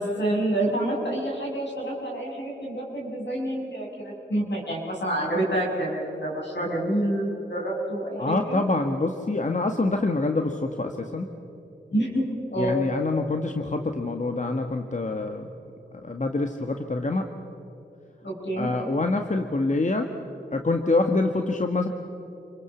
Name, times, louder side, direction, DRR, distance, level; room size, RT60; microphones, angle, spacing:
voice 1, 0.0-8.6 11.9-12.8 18.2-18.7, right 1 dB, 70° left, -2 dB, 7.6 m, -28 dB
voice 2, 8.2-11.3 12.6-15.5 16.0-17.3 18.6-20.1 20.5-21.9, left 2 dB, 40° left, 5 dB, 1.5 m, -26 dB
28.0 x 22.5 x 7.1 m, 2.9 s
cardioid pair, 50°, 19 cm